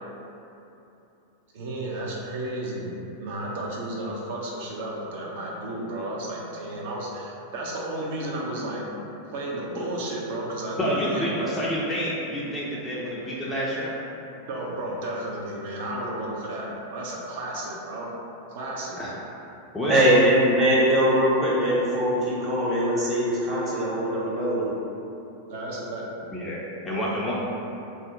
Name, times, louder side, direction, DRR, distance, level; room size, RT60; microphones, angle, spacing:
voice 1, 1.5-8.8 9.3-11.5 14.5-18.1 18.5-19.0 25.5-26.1, right 1 dB, 50° right, -3 dB, 0.5 m, -32 dB
voice 2, 10.8-13.9 19.0-19.1 19.7-20.0 26.3-27.3, equal, 10° left, -7 dB, 0.4 m, -28 dB
voice 3, 19.9-24.7, equal, 25° right, -7 dB, 0.8 m, -21 dB
2.6 x 2.0 x 3.8 m, 2.9 s
figure-of-eight pair, 90°, 0 cm